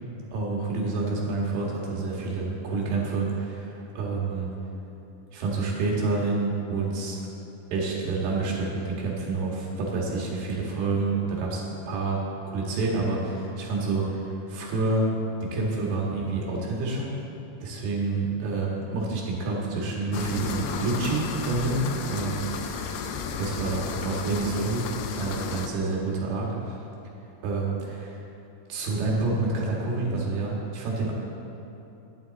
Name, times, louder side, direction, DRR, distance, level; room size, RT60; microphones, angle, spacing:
voice 1, 0.3-4.5 5.3-7.2 7.7-15.1 15.4-17.2 17.6-23.1 23.3-24.9 25.2-26.8 27.4-28.2 28.7-31.1, right 3 dB, 80° right, -3 dB, 3.7 m, -28 dB
sound 1, 20.1-25.7, left 6 dB, 85° left, 2.6 m, -33 dB
12.0 x 10.5 x 4.1 m, 2.9 s
omnidirectional pair, 4.5 m